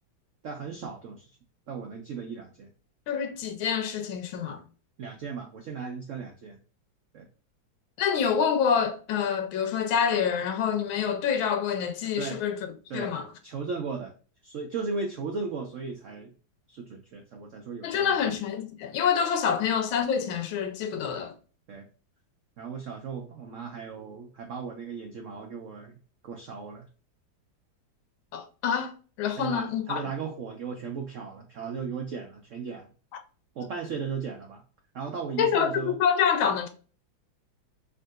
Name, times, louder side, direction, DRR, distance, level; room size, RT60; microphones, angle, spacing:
voice 1, 0.4-1.2 1.7-2.7 5.0-6.6 7.1-7.3 12.2-12.4 12.9-13.1 13.4-14.1 14.4-16.3 16.7-18.1 21.7-21.8 22.6-25.9 26.2-26.8 29.3-32.9 33.6-34.6 34.9-36.0, right 5 dB, 90° right, 0.6 m, -36 dB
voice 2, 3.1-4.6 8.0-12.7 12.9-13.3 17.8-21.3 28.3-30.0 33.1-33.2 35.4-36.7, left 7 dB, 90° left, 1.5 m, -27 dB
3.6 x 2.6 x 2.3 m
omnidirectional pair, 2.1 m